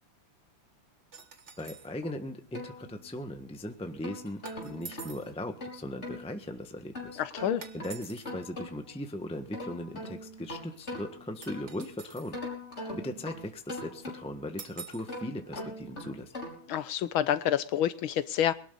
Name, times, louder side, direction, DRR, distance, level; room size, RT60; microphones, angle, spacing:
sound 1, 1.1-1.9 4.5-5.3 7.6-8.3 11.4-12.4 14.6-15.1, right 5 dB, 35° right, 1.5 m, -46 dB
voice 1, 1.6-7.2 7.7-12.4 12.9-16.3, left 1 dB, 5° left, 6 dB, 1.1 m, -38 dB
sound 2, 2.0-3.4 3.8-6.2 6.9-9.0 9.3-11.9 12.3-14.5 15.0-16.7, left 1 dB, 30° left, 5.4 m, -42 dB
voice 2, 7.2-7.6 16.7-18.5, left 10 dB, 70° left, 14 dB, 1.7 m, -28 dB
22.0 x 12.5 x 4.0 m, 0.42 s
omnidirectional pair, 2.4 m